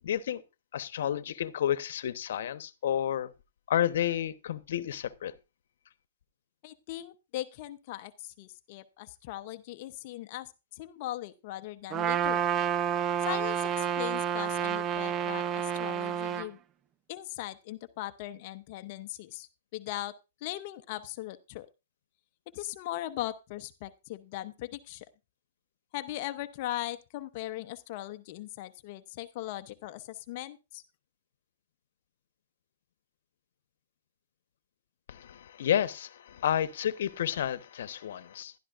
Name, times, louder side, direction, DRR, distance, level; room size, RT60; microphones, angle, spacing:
voice 1, 0.0-0.4 0.7-3.3 3.7-5.3 35.1-38.5, left 10 dB, 65° left, 1.1 m, -31 dB
voice 2, 6.6-12.5 13.2-16.6 17.1-20.1 20.4-21.7 22.5-25.1 25.9-30.8, left 15 dB, 45° left, 0.8 m, -39 dB
Trumpet, 11.9-16.5, right 8 dB, 20° right, 0.5 m, -29 dB
16.0 x 12.0 x 2.6 m
hypercardioid pair, 145°, 0 cm